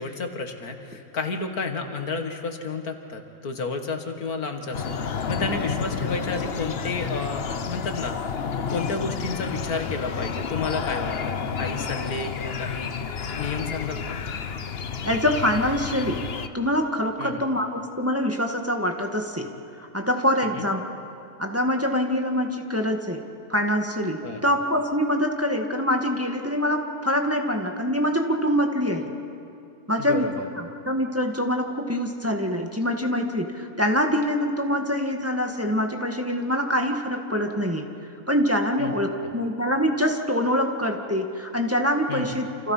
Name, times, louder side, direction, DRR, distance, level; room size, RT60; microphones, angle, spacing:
voice 1, 0.0-8.2 8.7-12.9 13.4-14.2 17.2-17.4 20.4-20.6 24.2-24.4 30.0-30.5 38.8-38.9 39.2-39.3 42.1-42.3, left 4 dB, 85° left, 5 dB, 2.3 m, -31 dB
sound 1, 4.7-16.5, left 6 dB, 50° left, 1.0 m, -30 dB
voice 2, 15.0-16.2 16.5-19.5 19.8-20.8 21.4-23.2 23.5-29.1 29.9-30.3 30.6-37.9 38.3-42.7, equal, 10° right, 3 dB, 1.7 m, -25 dB
29.0 x 27.5 x 5.7 m, 2.7 s
omnidirectional pair, 1.5 m